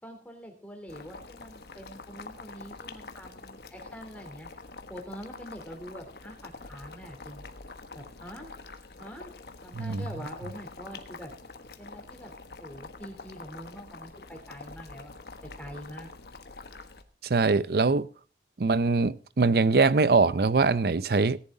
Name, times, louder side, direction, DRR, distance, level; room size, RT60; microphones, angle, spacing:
voice 1, 0.0-4.5 4.9-7.4 7.9-8.5 9.0-9.3 9.6-11.3 11.8-12.3 12.6-15.1 15.6-16.1, equal, 10° left, 3.0 m, -44 dB
Boiling, 0.9-17.0, left 3 dB, 65° left, 1.2 m, -46 dB
voice 2, 9.7-10.0 17.2-18.1 18.6-21.4, right 4 dB, 60° right, 0.5 m, -23 dB
17.5 x 11.0 x 3.8 m
head